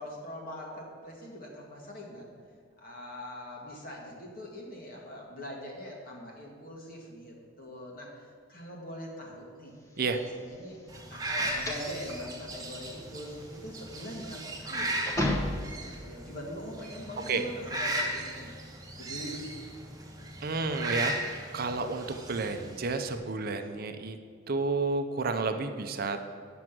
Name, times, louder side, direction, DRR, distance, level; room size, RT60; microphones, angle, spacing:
voice 1, 0.0-2.3 2.8-8.1 8.5-9.7 10.1-15.0 15.8-18.5 18.9-19.9, left 1 dB, 50° left, -1 dB, 1.9 m, -42 dB
sound 1, 10.0-16.0, left 1 dB, 15° left, 0.9 m, -35 dB
sound 2, 10.9-23.2, right 1 dB, 20° right, 1.4 m, -37 dB
voice 2, 20.4-24.2 24.5-26.3, right 3 dB, 50° right, 7 dB, 0.6 m, -31 dB
9.3 x 6.1 x 6.0 m, 2.1 s
head